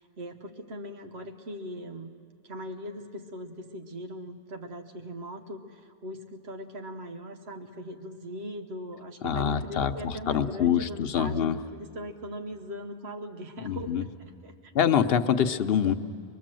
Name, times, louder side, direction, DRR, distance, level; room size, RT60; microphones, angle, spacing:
voice 1, 0.0-2.1 2.4-14.7, equal, 85° right, 5 dB, 1.3 m, -40 dB
voice 2, 9.2-11.6 13.6-14.0 14.7-15.9, left 8 dB, 70° left, 8 dB, 1.0 m, -25 dB
23.0 x 22.0 x 7.6 m, 2.4 s
omnidirectional pair, 1.0 m